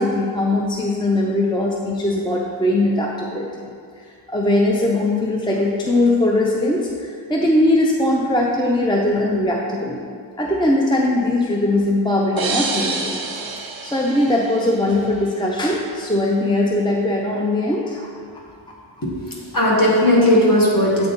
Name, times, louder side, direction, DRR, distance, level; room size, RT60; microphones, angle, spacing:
voice 1, 0.0-3.7 4.3-10.1 10.4-13.5 13.8-18.1, left 1 dB, 10° left, -1 dB, 0.5 m, -20 dB
sound 1, 12.4-15.1, right 3 dB, 50° right, 0.7 m, -28 dB
voice 2, 19.0-21.1, left 1 dB, 45° left, -5 dB, 1.5 m, -17 dB
7.8 x 3.4 x 4.0 m, 2.2 s
wide cardioid pair, 60°, 47 cm